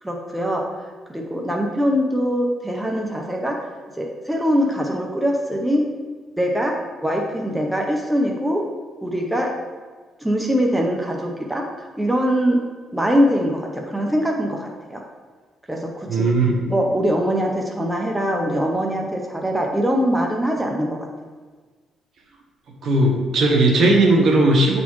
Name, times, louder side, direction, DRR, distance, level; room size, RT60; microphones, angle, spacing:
voice 1, 0.0-3.6 4.0-5.9 6.4-8.7 9.0-9.5 10.2-12.6 12.9-15.0 15.7-16.3 16.7-21.1, equal, 5° right, 0 dB, 0.8 m, -22 dB
voice 2, 16.1-16.6 22.8-24.8, right 2 dB, 60° right, 0 dB, 1.2 m, -17 dB
8.3 x 4.2 x 3.1 m, 1.4 s
cardioid pair, 90°, 0 cm